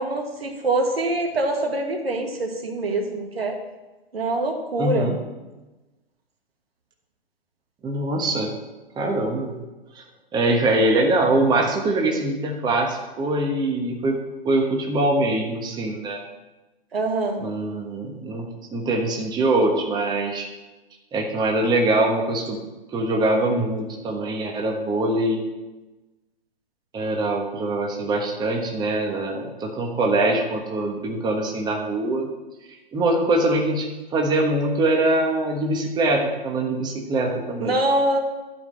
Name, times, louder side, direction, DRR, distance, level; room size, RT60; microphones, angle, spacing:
voice 1, 0.0-3.6 4.1-5.1 16.9-17.4 37.6-38.2, right 2 dB, 80° right, 3 dB, 2.1 m, -24 dB
voice 2, 4.8-5.2 7.8-8.5 9.0-9.6 9.9-10.0 10.3-14.2 14.4-16.2 17.4-18.5 18.7-20.5 21.1-22.6 22.9-25.4 26.9-32.3 32.9-37.8, right 2 dB, 15° right, 1 dB, 1.3 m, -23 dB
12.0 x 5.1 x 7.5 m, 1.1 s
figure-of-eight pair, 125°, 30 cm